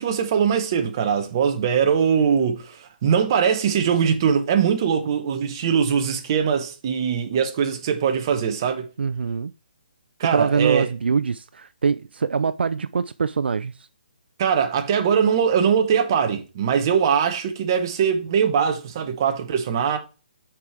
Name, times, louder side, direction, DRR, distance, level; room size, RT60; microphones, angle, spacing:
voice 1, 0.0-8.9 10.2-10.9 14.4-20.0, right 7 dB, 25° right, 0.7 m, -21 dB
voice 2, 9.0-9.5 10.3-13.7, right 5 dB, 85° right, 0.4 m, -23 dB
6.0 x 4.7 x 4.4 m
hypercardioid pair, 175°, 5 cm